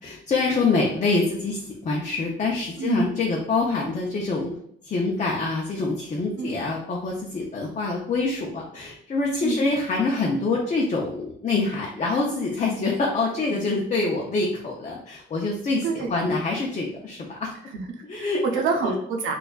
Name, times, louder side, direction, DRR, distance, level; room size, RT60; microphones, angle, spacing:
voice 1, 0.0-4.5 4.8-17.5 18.1-18.4 18.8-19.0, left 3 dB, 35° left, -2 dB, 0.6 m, -25 dB
voice 2, 2.8-3.1 6.4-6.5 9.4-9.6 13.5-13.6 15.8-16.4 17.7-19.4, right 4 dB, 85° right, 3 dB, 0.7 m, -27 dB
4.2 x 2.5 x 2.4 m, 0.68 s
cardioid pair, 90°, 20 cm